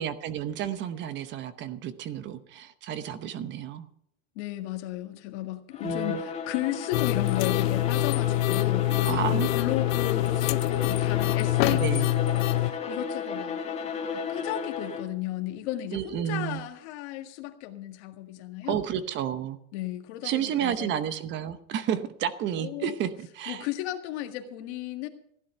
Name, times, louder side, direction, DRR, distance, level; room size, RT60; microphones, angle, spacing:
voice 1, 0.0-3.9 5.8-6.2 9.1-9.5 11.6-12.1 15.9-16.6 18.7-19.6 20.2-23.7, right 9 dB, 30° right, 13 dB, 0.9 m, -31 dB
voice 2, 4.4-13.6 14.1-18.8 19.7-20.9 22.6-23.0 23.5-25.1, left 13 dB, 55° left, 6 dB, 1.9 m, -34 dB
Bowed string instrument, 5.7-15.2, left 5 dB, 15° left, 1.6 m, -34 dB
sound 1, 6.9-12.7, left 16 dB, 75° left, 0.7 m, -25 dB
15.5 x 11.0 x 5.6 m, 0.73 s
supercardioid pair, 160°, 40 cm